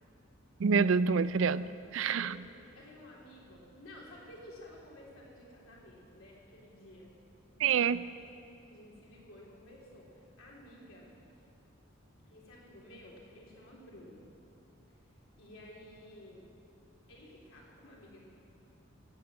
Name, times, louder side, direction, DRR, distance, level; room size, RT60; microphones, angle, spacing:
voice 1, 0.6-2.3 7.6-8.0, right 5 dB, 70° right, 16 dB, 0.4 m, -27 dB
voice 2, 2.0-2.4 2.7-7.1 7.5-7.8 8.7-11.1 12.2-14.3 14.9-15.0 15.4-16.5 17.1-18.2, left 1 dB, 90° left, -4 dB, 3.4 m, -53 dB
14.0 x 8.4 x 8.8 m, 2.5 s
head